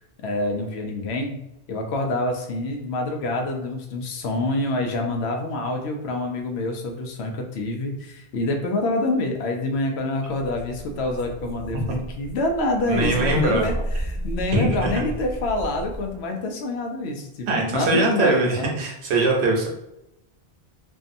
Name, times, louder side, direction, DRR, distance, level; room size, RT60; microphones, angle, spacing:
voice 1, 0.2-18.7, left 2 dB, 80° left, 3 dB, 0.8 m, -27 dB
sound 1, 10.3-16.2, right 1 dB, 35° left, 0.7 m, -33 dB
voice 2, 12.9-13.6 14.5-15.0 17.5-19.7, right 2 dB, 90° right, 0 dB, 1.0 m, -22 dB
2.6 x 2.3 x 2.5 m, 0.85 s
omnidirectional pair, 1.1 m